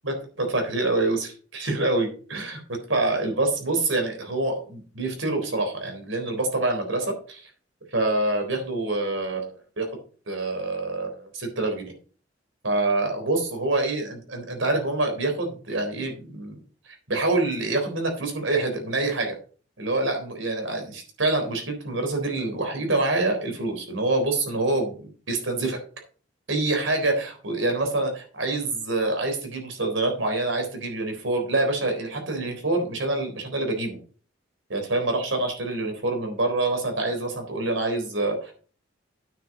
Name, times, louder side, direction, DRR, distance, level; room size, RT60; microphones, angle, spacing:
voice 1, 0.0-2.6 2.9-7.5 7.9-9.9 10.3-11.9 12.6-16.6 17.1-19.4 19.8-25.8 26.5-34.0 34.7-38.5, right 2 dB, 80° right, 4 dB, 3.8 m, -26 dB
9.4 x 6.9 x 5.4 m, 0.40 s
head